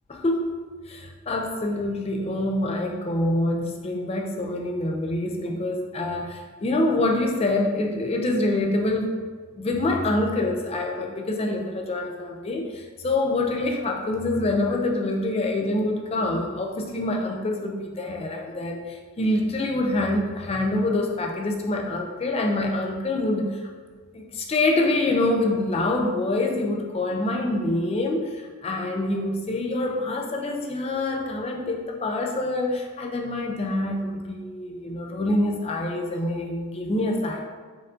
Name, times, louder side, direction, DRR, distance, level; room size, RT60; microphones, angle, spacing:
voice 1, 0.1-0.5 0.9-9.2 9.6-23.7 24.1-37.4, left 2 dB, 25° left, 2 dB, 0.3 m, -26 dB
4.3 x 2.6 x 3.7 m, 1.5 s
head